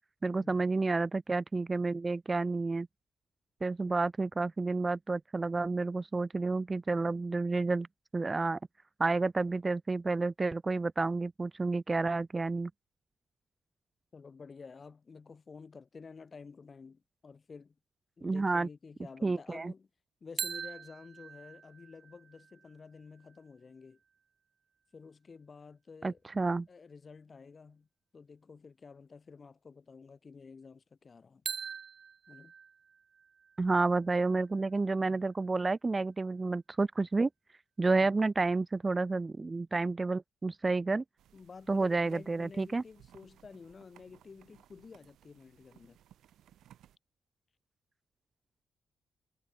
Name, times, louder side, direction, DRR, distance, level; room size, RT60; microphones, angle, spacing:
voice 1, 0.2-2.9 3.6-7.9 8.1-8.6 9.0-12.7 18.2-18.7 19.2-19.7 26.0-26.7 33.6-37.3 37.8-41.0 41.7-42.8, right 3 dB, 30° right, 0.4 m, -30 dB
voice 2, 14.1-17.8 18.2-19.9 20.2-24.0 24.9-26.2 26.7-27.9 28.1-31.4 32.3-32.5 37.9-38.2 41.3-46.0, left 5 dB, 45° left, 6.4 m, -51 dB
sound 1, 20.4-24.2 31.4-35.3, right 6 dB, 55° right, 2.4 m, -44 dB
sound 2, 41.2-47.0, right 11 dB, 80° right, 2.2 m, -61 dB
supercardioid pair, 55°, 0 cm